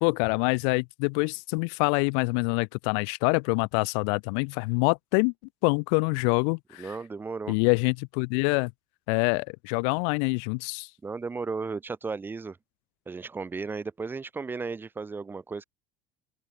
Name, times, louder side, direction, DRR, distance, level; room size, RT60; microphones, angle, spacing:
voice 1, 0.0-5.3 5.6-6.9 7.5-8.7 9.1-10.9, left 40 dB or more, 70° left, 0.8 m, -25 dB
voice 2, 6.8-7.6 11.0-12.6 13.1-15.6, right 4 dB, 15° right, 3.1 m, -35 dB
open air
cardioid pair, 165°, 16 cm